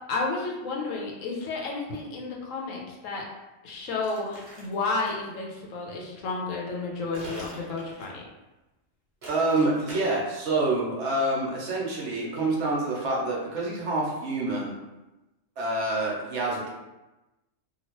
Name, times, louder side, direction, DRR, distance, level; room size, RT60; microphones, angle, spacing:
voice 1, 0.1-3.3 3.6-8.2, left 3 dB, 75° left, -1 dB, 1.0 m, -31 dB
sound 1, 4.0-5.3 7.1-8.3 9.2-9.9, right 1 dB, 40° right, 0.8 m, -44 dB
voice 2, 9.3-14.7 15.6-16.7, right 2 dB, 65° right, -3 dB, 1.0 m, -27 dB
2.9 x 2.5 x 2.9 m, 1.0 s
omnidirectional pair, 1.4 m